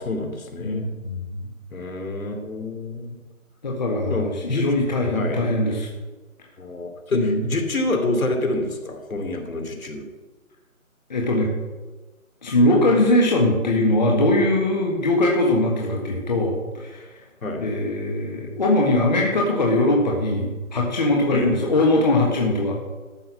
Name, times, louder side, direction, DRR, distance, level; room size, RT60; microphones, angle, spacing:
voice 1, 0.0-0.9 1.7-3.2 4.1-4.7 5.1-5.4 6.6-10.1 17.4-17.6 21.3-21.5, left 2 dB, 70° left, 4 dB, 2.9 m, -27 dB
voice 2, 0.6-1.5 3.6-5.9 7.1-7.4 11.1-11.5 12.4-17.1 17.6-22.8, left 1 dB, 30° left, -1 dB, 1.5 m, -21 dB
13.0 x 5.9 x 7.3 m, 1.2 s
hypercardioid pair, 170°, 43 cm